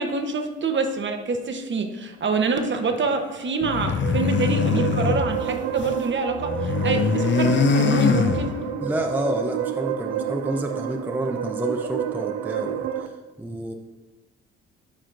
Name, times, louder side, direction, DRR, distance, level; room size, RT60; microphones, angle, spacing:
voice 1, 0.0-8.6, right 4 dB, 35° right, 5 dB, 0.9 m, -26 dB
sound 1, 3.6-6.0 6.3-8.9, left 6 dB, 35° left, 0.6 m, -23 dB
sound 2, 3.7-13.1, right 10 dB, 60° right, 0.5 m, -29 dB
voice 2, 8.8-13.7, right 1 dB, 5° right, 3 dB, 0.6 m, -29 dB
11.5 x 4.3 x 2.5 m, 1.3 s
hypercardioid pair, 50°, 31 cm